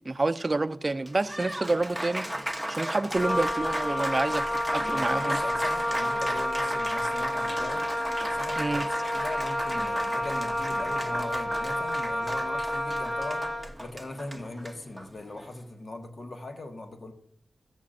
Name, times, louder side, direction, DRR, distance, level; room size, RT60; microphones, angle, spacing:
voice 1, 0.0-2.3 2.7-5.4 8.6-8.9, right 2 dB, 35° right, 0.6 m, -28 dB
Applause, 0.9-15.6, right 1 dB, 5° left, 0.9 m, -36 dB
Wind instrument woodwind instrument, 3.1-13.7, left 1 dB, 30° left, 1.6 m, -30 dB
voice 2, 4.8-7.9 8.2-13.5 13.8-17.1, left 2 dB, 55° left, 1.4 m, -40 dB
15.0 x 7.2 x 2.6 m
cardioid pair, 60°, 0 cm